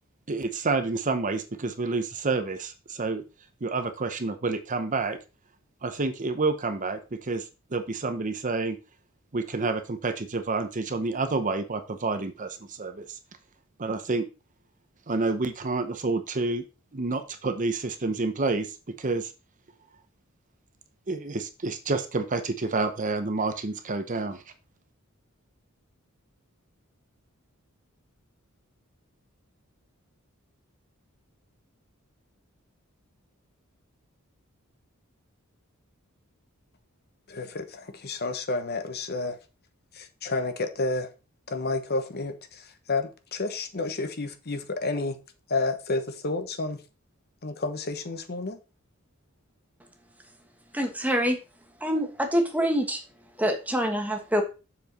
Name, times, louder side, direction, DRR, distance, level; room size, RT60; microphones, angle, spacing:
voice 1, 0.3-3.2 3.6-5.2 5.8-8.8 9.3-13.2 13.8-14.3 15.1-16.6 16.9-19.3 21.1-24.4, right 3 dB, 35° right, 9 dB, 0.8 m, -29 dB
voice 2, 37.3-39.4 40.0-41.1 41.5-45.2 45.5-46.8 47.4-48.6, left 3 dB, 50° left, 9 dB, 1.0 m, -30 dB
voice 3, 50.7-51.4 51.8-53.0 53.4-54.4, equal, 5° right, 4 dB, 1.3 m, -25 dB
7.2 x 4.9 x 5.3 m, 0.32 s
head